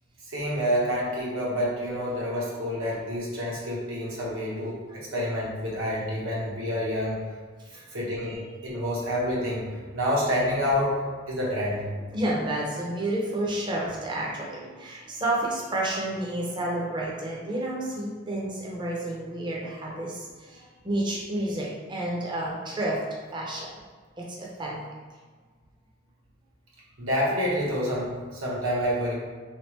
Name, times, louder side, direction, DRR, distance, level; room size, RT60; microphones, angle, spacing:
voice 1, 0.3-4.8 5.1-7.2 7.9-11.0 11.3-11.8 27.0-29.1, equal, 80° right, -6 dB, 1.2 m, -28 dB
voice 2, 7.6-7.9 12.1-23.0 23.3-23.7 24.2-24.8, right 1 dB, 20° right, -4 dB, 0.6 m, -30 dB
3.4 x 3.2 x 3.2 m, 1.5 s
head